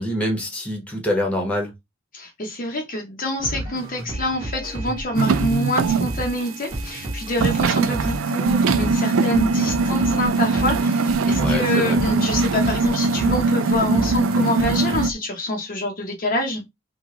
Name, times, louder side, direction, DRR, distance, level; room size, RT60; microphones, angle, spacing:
voice 1, 0.0-1.7 11.4-12.0, left 1 dB, 5° left, 1.0 m, -25 dB
voice 2, 2.1-16.6, left 1 dB, 40° left, 0.7 m, -26 dB
sound 1, 3.4-15.1, right 1 dB, 20° right, 1.3 m, -32 dB
sound 2, 5.2-6.2 6.5-6.6 7.0-7.1 7.4-15.1, right 3 dB, 70° right, 0.4 m, -21 dB
3.1 x 2.3 x 3.7 m
head